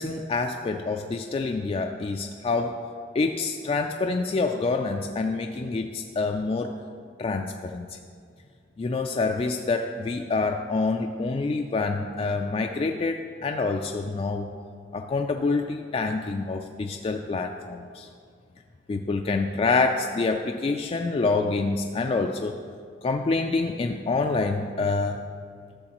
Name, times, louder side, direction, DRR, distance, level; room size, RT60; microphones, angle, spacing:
voice 1, 0.0-2.8 3.1-6.8 7.2-8.0 8.8-14.5 14.9-18.1 18.9-22.6 23.0-25.3, left 3 dB, 35° left, 4 dB, 0.3 m, -27 dB
12.5 x 7.0 x 3.0 m, 2.2 s
head